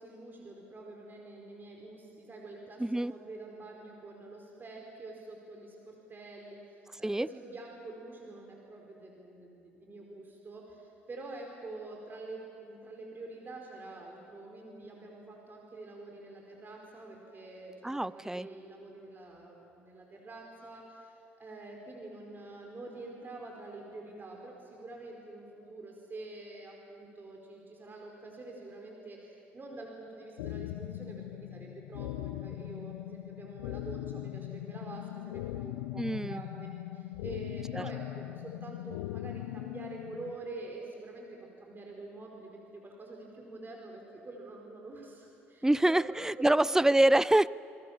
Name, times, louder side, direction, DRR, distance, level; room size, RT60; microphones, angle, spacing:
voice 1, 0.0-36.7 36.9-46.0 46.4-46.8, right 2 dB, 30° right, 0 dB, 4.7 m, -46 dB
voice 2, 2.8-3.1 7.0-7.3 17.8-18.5 36.0-36.4 37.8-37.9 45.6-47.5, right 1 dB, 10° right, 19 dB, 0.5 m, -25 dB
sound 1, 30.4-40.4, left 16 dB, 75° left, 0.5 m, -40 dB
27.0 x 22.0 x 7.3 m, 2.6 s
hypercardioid pair, 55°, 7 cm